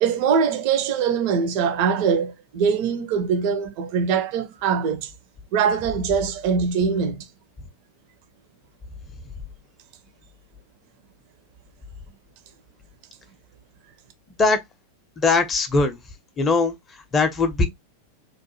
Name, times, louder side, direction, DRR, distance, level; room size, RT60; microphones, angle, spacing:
voice 1, 0.0-5.1 5.5-7.3, right 6 dB, 45° right, 0.4 m, -22 dB
voice 2, 15.2-16.0 16.4-16.8 17.1-17.7, left 3 dB, 20° left, 0.5 m, -20 dB
2.9 x 2.1 x 2.8 m
figure-of-eight pair, 90°, 0 cm